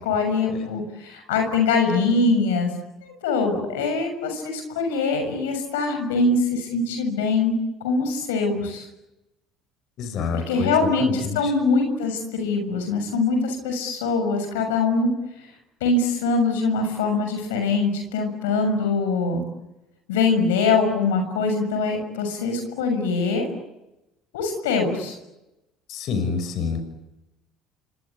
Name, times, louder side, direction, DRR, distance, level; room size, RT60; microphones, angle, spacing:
voice 1, 0.0-2.7 3.0-7.5 7.8-8.9 10.3-15.1 15.8-19.4 20.1-23.5 24.3-25.2, left 3 dB, 90° left, 5 dB, 6.8 m, -23 dB
voice 2, 10.0-11.5 25.9-26.8, left 5 dB, 60° left, 9 dB, 6.2 m, -27 dB
27.5 x 24.5 x 8.5 m, 0.95 s
supercardioid pair, 80°, 0 cm